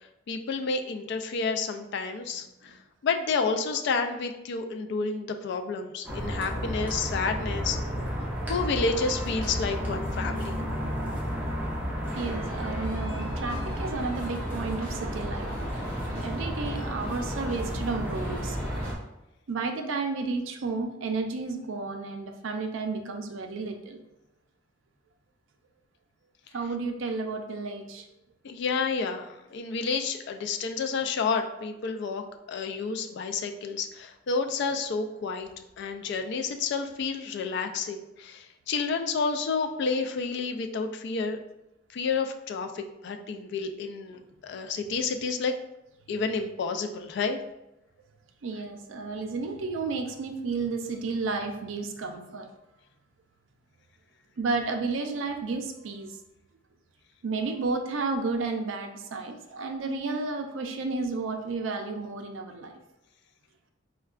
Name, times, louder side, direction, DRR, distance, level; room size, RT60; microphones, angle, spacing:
voice 1, 0.3-2.8 3.0-7.8 8.5-10.6 28.4-35.5 35.8-41.4 41.9-45.5 46.1-47.4, left 4 dB, 60° left, 6 dB, 0.3 m, -30 dB
sound 1, 6.0-18.9, equal, 10° right, 0.6 m, -32 dB
sound 2, 12.0-18.9, equal, 30° left, 1.3 m, -46 dB
voice 2, 12.2-15.8 16.2-18.6 19.5-24.0 26.5-28.0 48.4-52.5 54.4-56.1 57.2-62.8, right 3 dB, 75° right, 5 dB, 0.4 m, -32 dB
4.4 x 2.2 x 2.4 m, 0.90 s
head